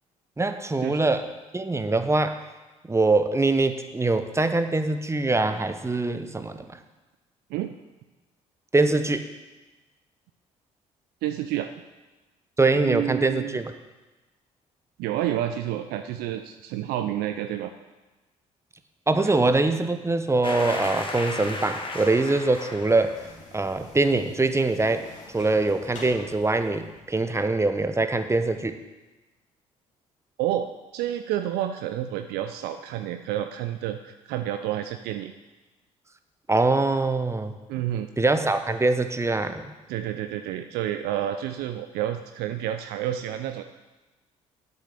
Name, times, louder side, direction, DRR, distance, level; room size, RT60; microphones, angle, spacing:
voice 1, 0.4-1.3 1.5-2.4 2.9-6.8 8.7-9.3 12.6-13.7 19.1-23.2 23.5-25.1 25.3-28.8 36.5-37.5 38.2-39.7, right 2 dB, 15° right, 9 dB, 0.9 m, -23 dB
voice 2, 11.2-11.7 12.7-13.6 15.0-17.7 19.2-19.3 30.4-30.7 30.9-35.3 37.7-38.1 39.9-43.7, right 12 dB, 70° right, 8 dB, 0.5 m, -29 dB
sound 1, 20.4-23.4, left 2 dB, 30° left, 1.6 m, -34 dB
sound 2, 22.7-27.9, left 2 dB, 45° left, 2.5 m, -47 dB
8.1 x 7.0 x 6.6 m, 1.2 s
hypercardioid pair, 50°, 17 cm